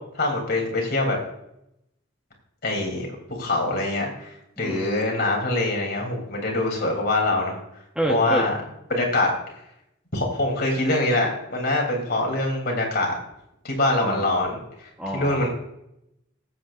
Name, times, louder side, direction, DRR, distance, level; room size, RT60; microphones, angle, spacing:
voice 1, 0.1-1.2 2.6-3.1 3.4-7.6 8.1-8.5 8.9-9.3 10.1-13.1 13.6-15.5, left 2 dB, 45° left, 0 dB, 3.0 m, -24 dB
voice 2, 4.6-5.0 7.9-8.4 14.0-14.4 15.0-15.5, equal, 5° right, 0 dB, 1.0 m, -28 dB
19.5 x 7.9 x 2.5 m, 0.81 s
head